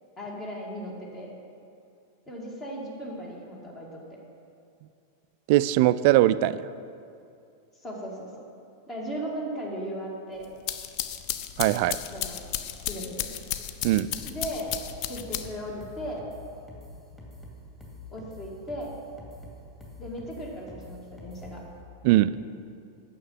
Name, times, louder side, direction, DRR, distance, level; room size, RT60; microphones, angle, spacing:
voice 1, 0.2-1.3 2.3-4.0 7.8-8.4 8.9-10.5 12.1-12.5 12.9-13.3 14.3-14.7 15.1-16.3 18.1-18.9 20.0-21.6, equal, 25° left, -2 dB, 2.1 m, -37 dB
voice 2, 5.5-6.6 11.6-12.0 13.8-14.1 22.0-22.3, right 15 dB, 45° right, 15 dB, 0.3 m, -20 dB
sound 1, 10.4-15.7, left 11 dB, 40° left, 0.6 m, -34 dB
sound 2, 13.8-21.7, left 1 dB, 5° left, 2.3 m, -46 dB
9.2 x 6.5 x 7.5 m, 2.5 s
figure-of-eight pair, 90°, 0 cm